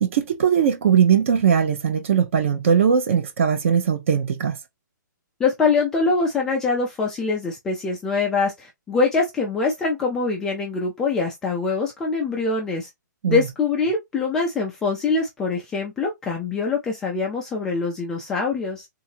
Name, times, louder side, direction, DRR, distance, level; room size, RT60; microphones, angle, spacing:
voice 1, 0.0-4.5 13.2-13.4, right 7 dB, 40° right, 0.8 m, -19 dB
voice 2, 5.4-12.9 13.3-18.9, left 4 dB, 5° left, 0.3 m, -24 dB
3.6 x 2.7 x 2.7 m
hypercardioid pair, 170°, 10 cm